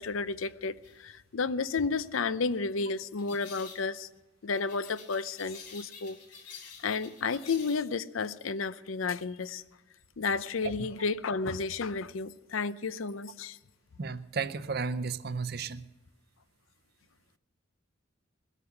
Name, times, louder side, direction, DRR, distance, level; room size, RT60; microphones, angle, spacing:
voice 1, 0.0-4.1 4.4-6.2 6.8-9.6 10.2-13.6, left 4 dB, 90° left, 0.6 m, -32 dB
sound 1, 0.8-1.0 3.2-3.8 4.5-7.9, left 6 dB, 40° left, 2.6 m, -49 dB
voice 2, 14.0-15.8, right 5 dB, 50° right, 0.6 m, -33 dB
21.0 x 8.3 x 7.1 m
head